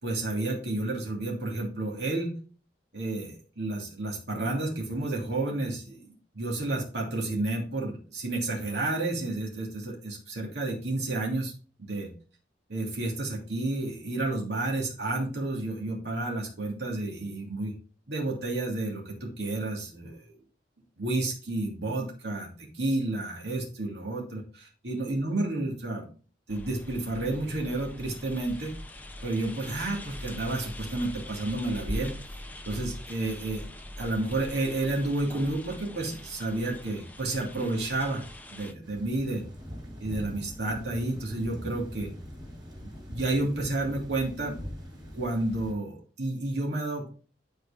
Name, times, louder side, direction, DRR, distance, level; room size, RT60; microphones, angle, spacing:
voice 1, 0.0-2.3 2.9-11.5 11.8-12.1 12.7-17.8 18.1-20.3 21.0-26.1 26.5-28.8 29.2-32.1 32.7-33.6 34.0-38.2 38.5-39.4 40.0-42.1 42.8-44.6 45.1-47.1, right 2 dB, 65° right, -2 dB, 2.8 m, -31 dB
sound 1, 26.5-38.7, left 1 dB, 10° left, 0.8 m, -42 dB
sound 2, 38.8-45.7, equal, 25° right, 3.6 m, -42 dB
11.5 x 4.7 x 3.6 m, 0.37 s
head